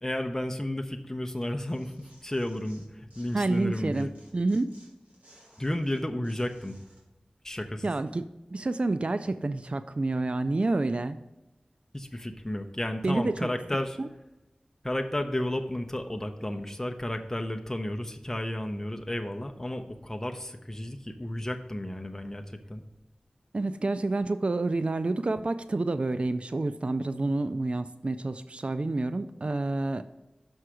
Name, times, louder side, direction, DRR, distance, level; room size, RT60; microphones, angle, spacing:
voice 1, 0.0-4.1 5.6-6.8 7.4-7.9 11.9-14.0 14.8-22.8, left 1 dB, 15° left, 4 dB, 0.7 m, -32 dB
Tearing, 1.4-3.6 3.9-7.0, right 1 dB, 70° right, 2.1 m, -59 dB
voice 2, 3.3-4.7 7.8-11.2 13.0-13.5 14.0-14.1 23.5-30.0, right 2 dB, 50° right, 11 dB, 0.3 m, -28 dB
6.3 x 5.6 x 4.8 m, 0.97 s
wide cardioid pair, 55°, 3 cm